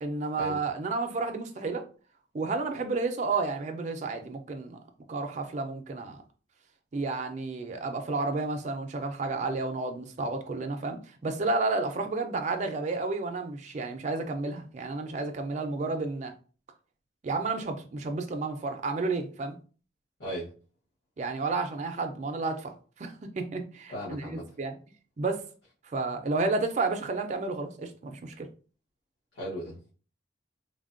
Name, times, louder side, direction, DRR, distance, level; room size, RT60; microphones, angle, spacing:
voice 1, 0.0-1.8 2.3-4.8 5.1-6.2 6.9-16.3 17.2-19.6 21.2-24.7 25.2-25.4 25.9-28.5, right 3 dB, 40° right, 0.4 m, -31 dB
voice 2, 20.2-20.5 23.9-24.4 29.3-29.9, right 1 dB, 65° left, 1.0 m, -36 dB
3.3 x 2.1 x 2.5 m
head